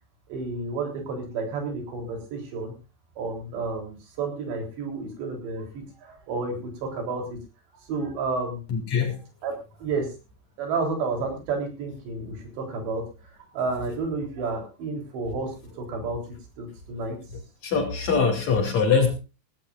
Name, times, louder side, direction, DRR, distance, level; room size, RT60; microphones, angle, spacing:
voice 1, 0.3-2.7 3.2-7.2 7.9-8.6 9.4-9.5 9.8-10.1 10.6-13.0 13.5-16.2 16.6-17.2, right 4 dB, 80° right, 3 dB, 6.0 m, -31 dB
voice 2, 8.7-9.2 17.6-19.1, left 5 dB, 45° left, 3 dB, 3.5 m, -22 dB
18.5 x 16.0 x 2.5 m, 0.31 s
omnidirectional pair, 4.9 m